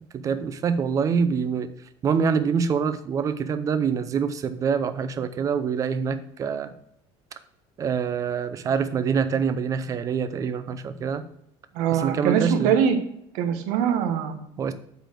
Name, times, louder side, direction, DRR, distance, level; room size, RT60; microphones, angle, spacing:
voice 1, 0.1-1.7 2.0-6.7 7.8-11.3 11.9-12.8 14.6-14.7, right 6 dB, 30° right, 11 dB, 0.6 m, -25 dB
voice 2, 11.7-13.0 13.3-14.4, right 8 dB, 85° right, 7 dB, 1.4 m, -22 dB
8.2 x 4.1 x 6.0 m, 0.72 s
cardioid pair, 165°, 12 cm